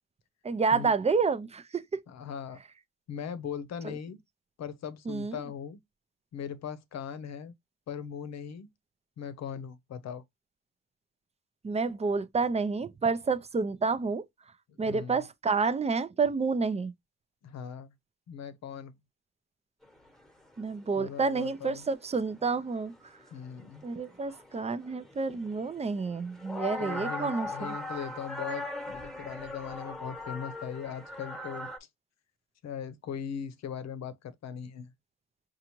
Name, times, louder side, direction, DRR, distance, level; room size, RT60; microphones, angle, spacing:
voice 1, 0.4-1.8 5.1-5.4 11.6-14.2 14.8-16.9 20.6-22.9 23.8-27.8, right 4 dB, 20° right, 0.6 m, -29 dB
voice 2, 2.1-2.6 3.1-4.2 4.6-5.8 6.3-7.5 7.9-8.7 9.2-10.2 14.7-15.2 17.4-17.9 18.3-18.9 21.0-21.8 23.3-23.8 26.8-31.7 32.6-34.9, left 7 dB, 60° left, 0.8 m, -39 dB
sound 1, 19.8-19.9 20.3-20.4 20.6-21.0 21.4-22.8 23.2-31.8, left 2 dB, ahead, 1.2 m, -40 dB
5.6 x 2.5 x 3.0 m
cardioid pair, 90°, 30 cm